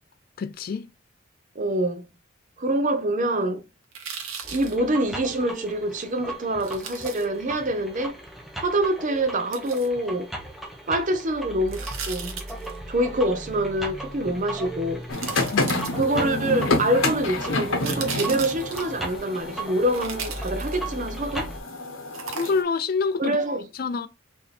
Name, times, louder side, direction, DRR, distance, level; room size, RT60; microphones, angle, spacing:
voice 1, 0.4-0.9 15.5-16.0 22.3-23.4 23.7-24.1, left 4 dB, 45° left, 0.3 m, -27 dB
voice 2, 1.6-2.1 2.6-3.6 4.5-8.2 8.6-10.3 10.9-12.4 12.9-15.0 15.9-21.5 23.2-23.7, right 1 dB, 40° right, 0.6 m, -25 dB
sound 1, 3.9-4.8 6.6-7.2 9.5-9.9 11.7-12.8 14.4-14.5 15.1-16.3 17.5-19.0 19.9-21.0 22.1-22.8 23.2-23.3, right 6 dB, 85° right, 1.0 m, -36 dB
sound 2, 4.4-21.6, right 2 dB, ahead, 0.7 m, -37 dB
sound 3, 15.1-22.6, left 2 dB, 75° left, 1.0 m, -29 dB
4.7 x 2.8 x 3.3 m
head